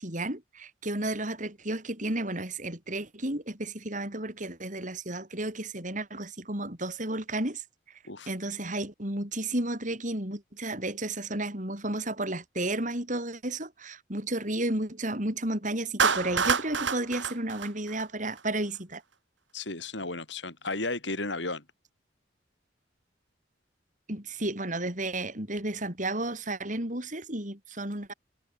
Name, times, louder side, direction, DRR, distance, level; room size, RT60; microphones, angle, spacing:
voice 1, 0.0-7.6 8.3-19.0 24.1-28.1, right 1 dB, 45° right, 6.2 m, -32 dB
Clapping, 16.0-18.4, right 5 dB, 90° right, 3.1 m, -27 dB
voice 2, 19.5-21.6, left 2 dB, 75° left, 7.3 m, -34 dB
head